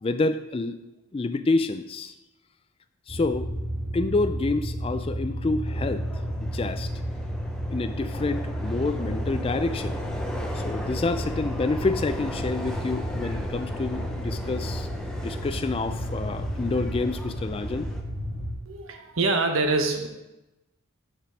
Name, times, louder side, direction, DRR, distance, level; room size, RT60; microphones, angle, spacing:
voice 1, 0.0-0.8 1.1-2.1 3.1-3.5 3.9-6.1 6.4-6.9 7.7-10.0 10.5-14.9 15.2-17.9, left 3 dB, 25° left, 10 dB, 0.3 m, -28 dB
sound 1, 3.1-18.5, equal, 25° right, 1.3 m, -32 dB
Subway metro underground, 5.7-18.0, left 1 dB, 5° left, 0.7 m, -38 dB
voice 2, 18.7-20.1, right 3 dB, 70° right, 4 dB, 0.9 m, -25 dB
7.3 x 5.2 x 6.1 m, 0.97 s
head